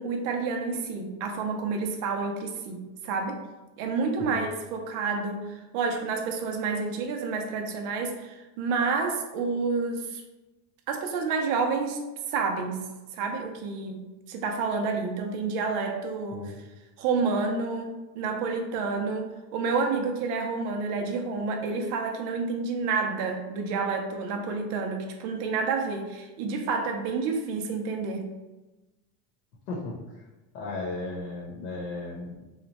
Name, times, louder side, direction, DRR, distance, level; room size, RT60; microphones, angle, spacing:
voice 1, 0.0-3.4 3.8-10.2 10.9-12.0 12.3-12.8 13.1-14.0 14.3-16.4 17.0-28.3, right 4 dB, 40° right, 3 dB, 0.4 m, -29 dB
voice 2, 29.7-30.2 30.5-32.4, left 2 dB, 80° left, -3 dB, 1.0 m, -35 dB
3.1 x 2.1 x 4.0 m, 1.1 s
cardioid pair, 170°, 47 cm